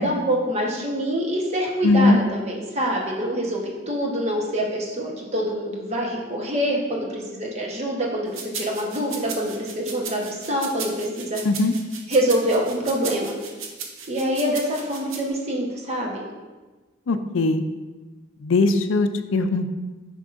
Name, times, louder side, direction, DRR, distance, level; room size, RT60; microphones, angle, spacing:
voice 1, 0.0-11.4 12.1-13.3 14.1-16.3, equal, 35° right, -2 dB, 1.1 m, -25 dB
voice 2, 1.8-2.2 11.5-11.7 17.1-17.6 18.4-19.8, left 3 dB, 75° left, 9 dB, 0.5 m, -20 dB
sound 1, 8.3-15.2, right 6 dB, 90° right, 0.8 m, -36 dB
8.4 x 5.4 x 2.5 m, 1.3 s
head